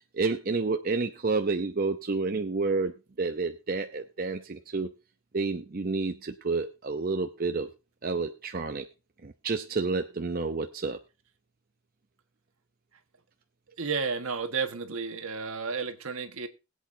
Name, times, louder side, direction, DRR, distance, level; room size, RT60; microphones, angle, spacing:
voice 1, 0.1-4.9 5.3-7.7 8.0-8.9 9.2-11.0, right 3 dB, 40° right, 6 dB, 0.6 m, -30 dB
voice 2, 13.8-16.5, right 5 dB, 70° right, 7 dB, 1.5 m, -32 dB
22.0 x 8.3 x 2.7 m, 0.28 s
head